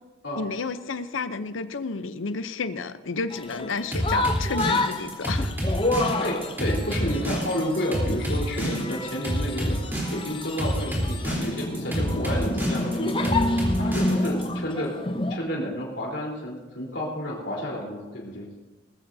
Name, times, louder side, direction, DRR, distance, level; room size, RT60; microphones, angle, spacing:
voice 1, 0.3-5.5, left 4 dB, 90° left, 12 dB, 0.7 m, -31 dB
sound 1, 3.3-15.4, left 2 dB, 25° left, 0.7 m, -29 dB
sound 2, 3.9-14.5, equal, 10° right, 3.6 m, -28 dB
voice 2, 6.0-9.8 10.1-15.0 15.3-18.5, equal, 65° left, -3 dB, 3.8 m, -31 dB
20.5 x 14.0 x 2.7 m, 1.1 s
head